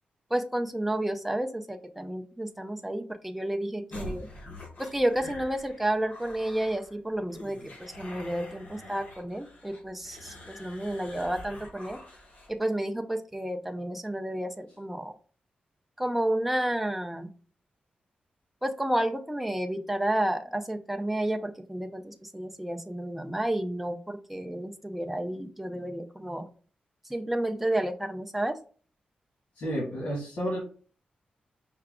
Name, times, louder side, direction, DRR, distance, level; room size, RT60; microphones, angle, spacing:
voice 1, 0.3-4.3 4.8-12.0 12.5-15.1 16.0-17.3 18.6-26.5 27.1-28.6, right 1 dB, 5° right, 5 dB, 0.5 m, -31 dB
sound 1, 3.9-12.6, left 1 dB, 60° left, 1.0 m, -45 dB
voice 2, 29.5-30.6, equal, 90° left, -5 dB, 1.6 m, -31 dB
5.7 x 2.3 x 3.6 m, 0.40 s
wide cardioid pair, 125°, 3 cm